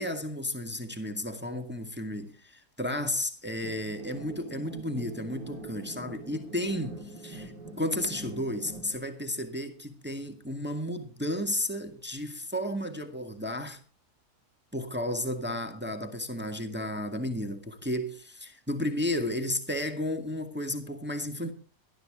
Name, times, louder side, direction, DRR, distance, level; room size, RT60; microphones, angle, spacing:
voice 1, 0.0-7.0 7.2-7.5 7.8-13.8 14.7-21.5, left 1 dB, 5° right, 1.7 m, -33 dB
sound 1, 3.6-9.0, right 2 dB, 85° right, 3.2 m, -44 dB
19.0 x 12.5 x 3.6 m
omnidirectional pair, 1.7 m